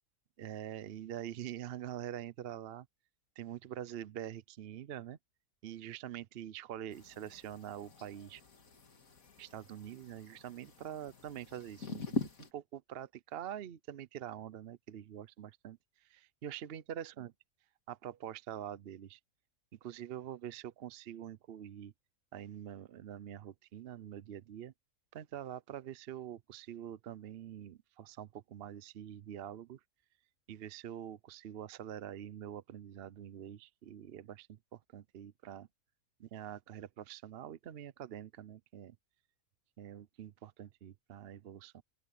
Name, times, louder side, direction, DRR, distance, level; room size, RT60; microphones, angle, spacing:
voice 1, 0.4-2.9 3.4-5.2 5.6-8.4 9.4-15.8 16.1-17.3 17.9-19.2 19.8-21.9 22.3-24.7 25.1-29.8 30.5-35.7 36.2-38.9 39.8-41.8, right 10 dB, 55° right, 0.7 m, -45 dB
sound 1, 6.9-12.5, left 3 dB, 70° left, 2.5 m, -44 dB
open air
omnidirectional pair, 1.5 m